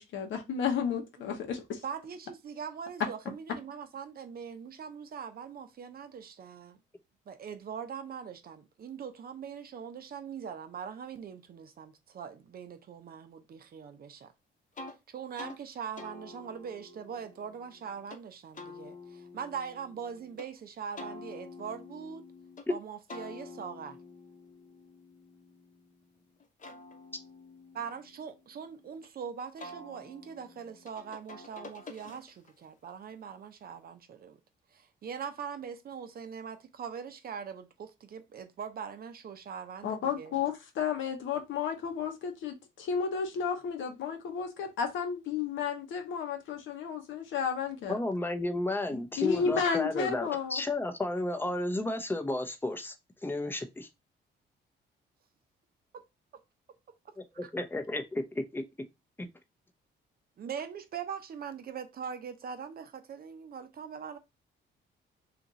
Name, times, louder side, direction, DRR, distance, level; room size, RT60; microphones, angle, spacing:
voice 1, 0.0-1.8 39.8-48.0 48.9-50.6, left 6 dB, 75° left, 1.0 m, -32 dB
voice 2, 1.8-6.8 7.3-14.3 15.1-22.2 22.7-24.0 27.7-34.4 34.7-40.3 57.4-57.5 60.4-64.2, right 7 dB, 50° right, 0.6 m, -42 dB
sound 1, 14.8-15.0 15.4-15.6 16.0-18.2 18.5-20.5 21.0-22.7 23.1-26.0 26.4-29.1 29.6-32.6, left 3 dB, 40° left, 0.9 m, -48 dB
voice 3, 47.9-52.9 53.2-53.9 57.2-58.6, left 2 dB, 10° left, 0.7 m, -32 dB
2.9 x 2.5 x 3.9 m
cardioid pair, 90°, 20 cm